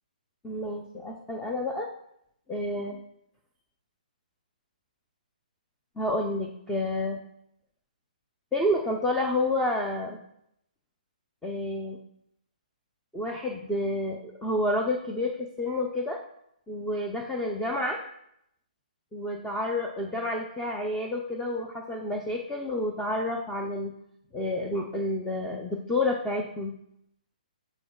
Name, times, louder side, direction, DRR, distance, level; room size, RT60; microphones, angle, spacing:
voice 1, 0.4-1.9 2.5-3.0 6.0-7.2 8.5-10.2 11.4-12.0 13.1-16.2 16.7-18.0 19.1-23.9 24.3-26.7, left 1 dB, 5° left, 0 dB, 0.6 m, -29 dB
12.0 x 4.4 x 2.4 m, 0.76 s
hypercardioid pair, 145°, 5 cm